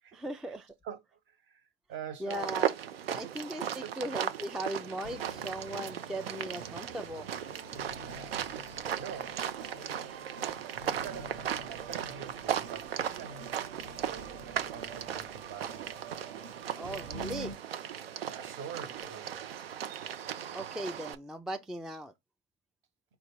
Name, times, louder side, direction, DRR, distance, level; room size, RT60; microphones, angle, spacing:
voice 1, 0.1-0.7 2.2-2.7 3.1-7.3 16.7-17.6 20.5-22.1, right 1 dB, ahead, 0.3 m, -38 dB
voice 2, 0.8-1.6 1.9-2.6 3.2-3.9 8.0-8.4 9.0-9.9 10.9-15.9 18.3-19.4, right 8 dB, 45° right, 1.0 m, -46 dB
sound 1, 2.3-21.1, right 9 dB, 85° right, 0.6 m, -37 dB
sound 2, 5.0-17.5, right 4 dB, 65° right, 1.2 m, -47 dB
4.8 x 2.4 x 4.5 m
hypercardioid pair, 85°, 29 cm